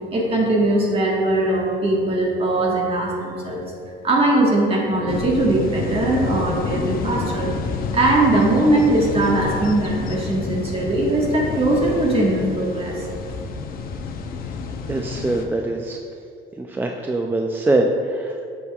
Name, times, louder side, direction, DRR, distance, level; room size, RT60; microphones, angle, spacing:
voice 1, 0.1-3.6 4.0-7.5 7.9-13.0, right 2 dB, 35° right, -2 dB, 1.4 m, -20 dB
sound 1, 5.1-15.4, left 4 dB, 60° left, 0.6 m, -29 dB
voice 2, 14.9-16.0 16.6-18.5, right 2 dB, 10° right, 2 dB, 0.3 m, -23 dB
8.3 x 6.5 x 2.3 m, 2.4 s
cardioid pair, 110°, 17 cm